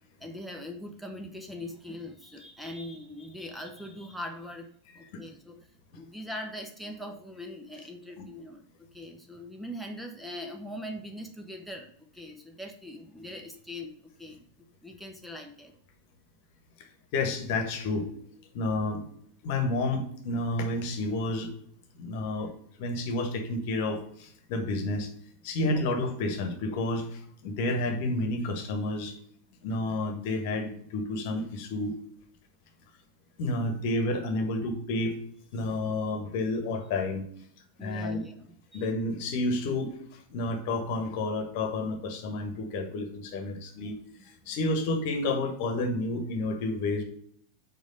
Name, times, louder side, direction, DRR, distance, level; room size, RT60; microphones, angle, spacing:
voice 1, 0.2-4.7 5.0-5.6 5.9-14.4 14.8-15.7 37.8-38.9 44.2-44.3, left 1 dB, ahead, 3 dB, 1.0 m, -41 dB
voice 2, 16.8-18.1 18.5-19.0 19.4-21.5 21.9-22.5 22.8-25.1 25.4-29.2 29.6-31.9 33.4-35.2 35.5-37.2 37.8-38.2 38.7-44.0 44.2-47.0, left 2 dB, 50° left, 6 dB, 1.3 m, -30 dB
5.3 x 4.9 x 6.3 m, 0.65 s
figure-of-eight pair, 90°, 0 cm